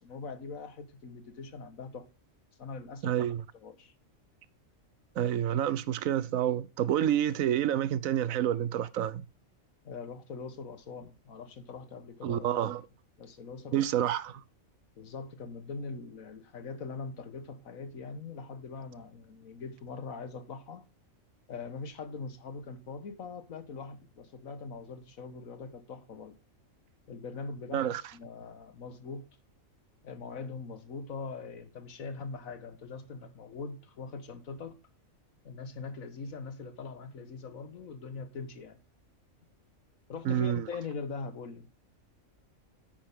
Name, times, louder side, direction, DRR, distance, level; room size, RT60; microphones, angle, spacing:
voice 1, 0.0-2.1 2.6-3.3 3.6-3.9 9.8-12.6 13.2-13.9 15.0-20.8 21.5-26.4 27.1-29.2 30.0-34.8 35.4-38.8 40.1-41.7, left 4 dB, 80° left, 1.7 m, -42 dB
voice 2, 3.0-3.4 5.2-9.3 12.2-12.8 13.7-14.4 27.7-28.0 40.2-40.6, right 10 dB, 75° right, 1.1 m, -28 dB
10.0 x 8.6 x 3.6 m
omnidirectional pair, 1.4 m